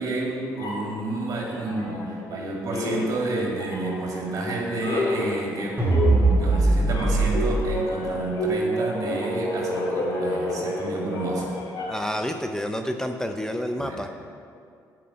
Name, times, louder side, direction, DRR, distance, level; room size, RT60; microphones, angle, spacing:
voice 1, 0.0-5.8 6.1-11.6 13.8-14.0, right 2 dB, 55° right, -2 dB, 2.2 m, -30 dB
sound 1, 0.6-2.4 2.7-12.2, left 1 dB, 65° left, 1.8 m, -30 dB
sound 2, 5.8-7.6, right 2 dB, 25° right, 1.8 m, -20 dB
voice 2, 11.9-14.1, equal, 10° left, 5 dB, 0.5 m, -29 dB
7.7 x 5.0 x 6.7 m, 2.3 s
supercardioid pair, 75°, 7 cm